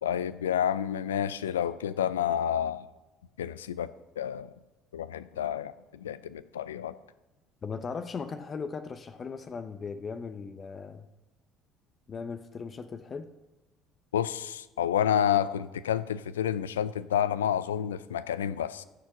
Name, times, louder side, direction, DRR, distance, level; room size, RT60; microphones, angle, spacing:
voice 1, 0.0-2.9 3.4-3.9 4.2-4.5 4.9-5.7 6.0-6.9 14.1-18.8, left 9 dB, 85° left, 16 dB, 0.4 m, -29 dB
voice 2, 7.6-11.1 12.1-13.3, left 5 dB, 40° left, 10 dB, 0.7 m, -38 dB
14.0 x 6.5 x 5.9 m, 1.1 s
hypercardioid pair, 60°, 0 cm